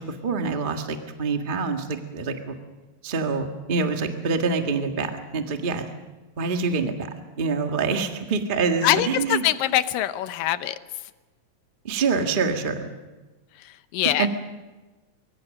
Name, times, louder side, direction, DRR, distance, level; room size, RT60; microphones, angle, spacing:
voice 1, 0.0-2.5 3.0-5.9 6.4-7.1 7.4-9.5 11.8-12.9 14.0-14.3, right 4 dB, 55° right, 5 dB, 0.5 m, -26 dB
voice 2, 8.8-10.8 13.9-14.3, left 13 dB, 75° left, 12 dB, 2.4 m, -23 dB
24.5 x 23.0 x 6.6 m, 1.2 s
omnidirectional pair, 4.1 m